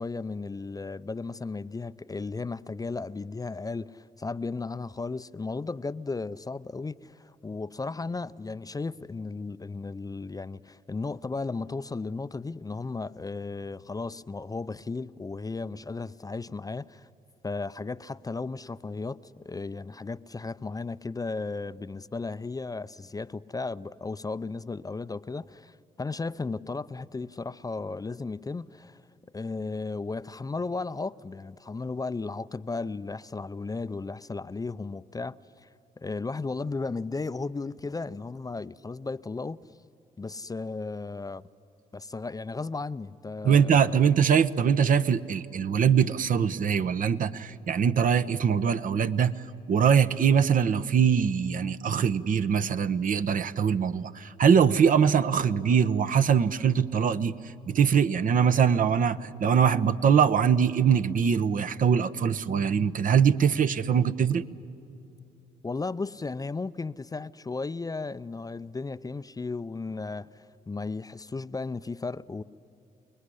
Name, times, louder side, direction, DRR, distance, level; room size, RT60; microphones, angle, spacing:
voice 1, 0.0-17.1 17.4-29.0 29.3-35.7 36.0-39.6 40.2-41.5 41.9-44.1 65.6-72.4, left 3 dB, 20° left, 0.6 m, -35 dB
voice 2, 43.4-49.3 49.7-57.4 57.7-64.4, right 7 dB, 55° right, 0.9 m, -23 dB
29.0 x 20.0 x 10.0 m
hypercardioid pair, 55°, 17 cm